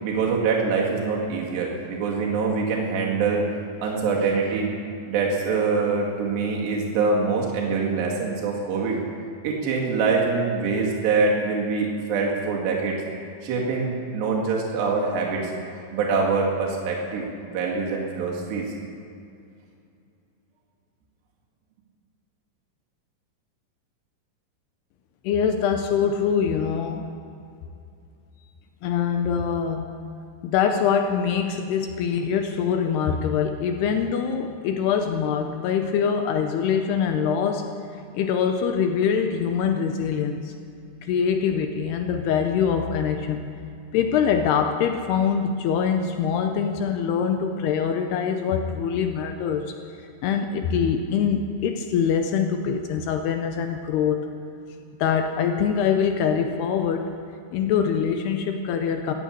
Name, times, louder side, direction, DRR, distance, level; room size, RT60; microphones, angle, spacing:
voice 1, 0.0-3.5 3.8-4.7 5.1-9.0 9.4-13.0 13.4-15.5 15.9-18.7, right 4 dB, 70° right, -2 dB, 4.1 m, -24 dB
voice 2, 25.2-27.1 28.8-29.9 30.4-37.7 38.1-40.5 41.0-43.4 43.9-49.7 50.2-54.3 55.0-57.1 57.5-59.1, left 7 dB, 80° left, 5 dB, 2.5 m, -24 dB
14.5 x 9.4 x 8.6 m, 2.5 s
omnidirectional pair, 5.3 m